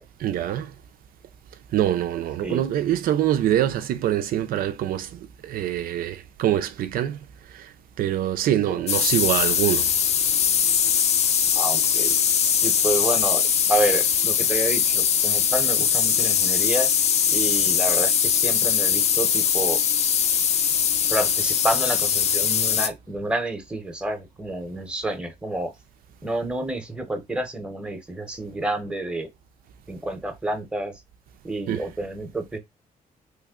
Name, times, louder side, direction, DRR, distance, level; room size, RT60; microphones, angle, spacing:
voice 1, 0.2-0.7 1.7-7.2 7.5-9.9 31.7-31.9, right 11 dB, 80° right, 0.5 m, -25 dB
sound 1, 8.9-22.9, left 8 dB, 50° left, 0.4 m, -21 dB
voice 2, 11.5-12.1 12.6-13.4 13.7-16.9 17.3-19.8 21.1-25.7 26.2-29.3 29.9-31.0 31.4-32.6, right 1 dB, 5° right, 0.8 m, -29 dB
3.2 x 2.1 x 3.6 m
cardioid pair, 130°, 15 cm